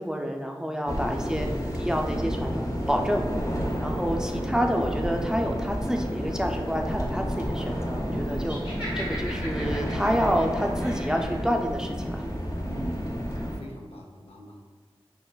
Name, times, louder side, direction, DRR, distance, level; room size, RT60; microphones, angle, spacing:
voice 1, 0.0-1.5 1.8-3.2 3.8-8.6 9.0-12.2, equal, 5° right, 2 dB, 0.4 m, -28 dB
sound 1, 0.9-13.6, equal, 35° left, 0.6 m, -30 dB
Laughter, 8.4-11.4, equal, 55° left, 1.3 m, -38 dB
voice 2, 12.6-13.1 13.6-14.7, equal, 80° left, 0 dB, 0.6 m, -42 dB
6.8 x 2.4 x 2.2 m, 1.4 s
wide cardioid pair, 50°, 10 cm